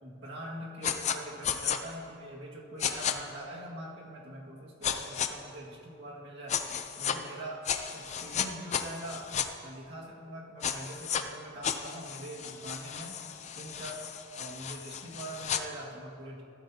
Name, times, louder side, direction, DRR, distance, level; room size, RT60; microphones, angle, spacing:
voice 1, 0.0-6.6 7.0-7.7 7.9-9.3 9.6-13.2 13.6-14.0 14.4-16.4, right 1 dB, 60° right, -3 dB, 1.9 m, -43 dB
sound 1, 0.8-1.2 1.4-1.8 2.8-3.1 4.8-5.3 6.5-7.2 7.6-9.5 10.6-11.2 11.6-15.6, left 8 dB, 35° left, 0.5 m, -33 dB
14.5 x 12.0 x 2.8 m, 2.5 s
head